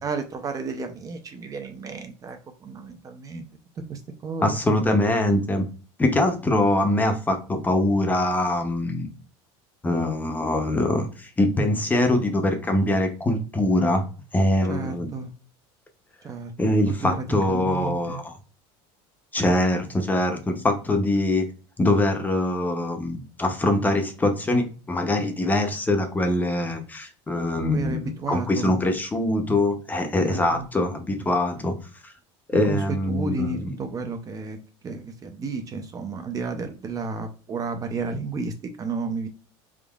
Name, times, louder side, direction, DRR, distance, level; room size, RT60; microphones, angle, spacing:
voice 1, 0.0-3.5 3.9-4.6 14.7-15.3 16.2-18.2 27.7-28.7 30.2-30.7 31.6-31.7 32.7-34.6 34.8-39.3, right 4 dB, 25° right, 6 dB, 0.5 m, -32 dB
voice 2, 4.4-5.6 6.0-9.1 9.8-14.0 14.3-15.1 16.6-18.4 19.3-21.5 21.8-31.7 32.5-33.7, left 1 dB, 15° left, 5 dB, 0.7 m, -23 dB
3.7 x 3.6 x 2.3 m, 0.37 s
supercardioid pair, 135°, 13 cm